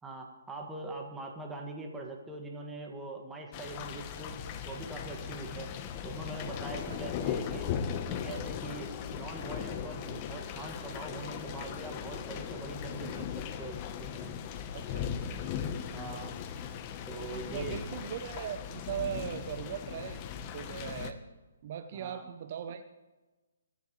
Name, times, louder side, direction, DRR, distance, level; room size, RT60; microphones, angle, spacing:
voice 1, 0.0-4.3 4.7-5.7 6.0-7.7 8.1-13.8 14.1-14.3 15.9-16.4 17.1-17.8 21.9-22.2, right 2 dB, 10° right, 1 dB, 1.9 m, -42 dB
sound 1, 3.5-21.1, left 8 dB, 30° left, 1.0 m, -38 dB
voice 2, 14.7-15.1 17.2-21.2 21.6-22.8, right 9 dB, 45° right, 9 dB, 0.7 m, -39 dB
23.0 x 10.5 x 3.2 m, 1.2 s
hypercardioid pair, 145°, 0 cm